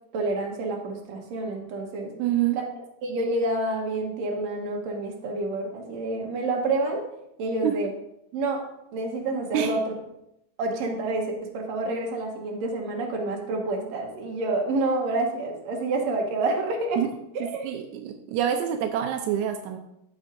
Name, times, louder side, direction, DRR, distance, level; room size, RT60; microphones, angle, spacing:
voice 1, 0.1-2.1 3.0-7.1 7.4-7.9 8.3-9.9 10.6-17.0 17.3-17.7, right 2 dB, 70° right, 1 dB, 2.4 m, -28 dB
voice 2, 2.2-2.6 7.6-7.7 9.5-9.7 17.0-17.1 17.6-19.8, right 10 dB, 90° right, 5 dB, 2.0 m, -26 dB
13.5 x 5.4 x 2.6 m, 0.83 s
omnidirectional pair, 3.3 m